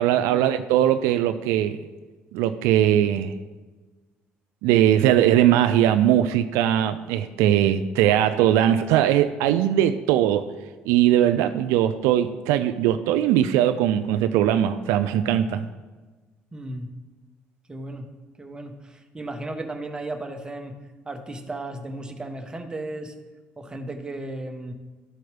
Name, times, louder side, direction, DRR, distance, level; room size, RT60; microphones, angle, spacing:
voice 1, 0.0-1.8 2.3-3.3 4.6-10.5 10.9-15.7, right 11 dB, 90° right, 10 dB, 0.3 m, -20 dB
voice 2, 16.5-16.9 17.7-18.1 18.4-20.7 21.0-23.1 23.6-24.7, right 2 dB, 20° right, 5 dB, 1.0 m, -35 dB
12.5 x 4.3 x 3.3 m, 1.3 s
cardioid pair, 90°, 5 cm